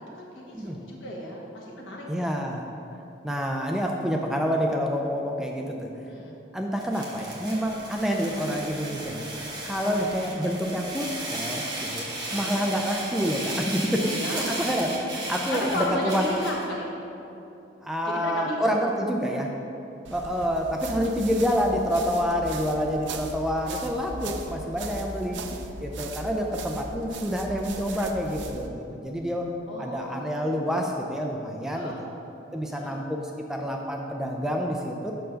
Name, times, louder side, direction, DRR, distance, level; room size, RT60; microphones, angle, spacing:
voice 1, 0.1-2.1 6.1-6.3 9.8-10.1 12.3-12.6 13.9-14.6 15.5-16.9 18.0-18.8 25.3-25.9 29.7-30.9 31.7-32.0 32.7-33.0, left 1 dB, 85° left, -2 dB, 1.3 m, -34 dB
voice 2, 2.1-2.6 3.2-5.9 6.5-9.2 9.7-16.2 17.8-19.5 20.1-25.4 25.8-29.5 29.8-31.9 32.5-35.1, equal, 5° right, 1 dB, 0.4 m, -28 dB
sound 1, 6.8-16.6, right 2 dB, 20° right, 1.1 m, -35 dB
sound 2, 20.0-28.7, right 3 dB, 70° right, 0.5 m, -38 dB
5.5 x 4.6 x 6.2 m, 3.0 s
head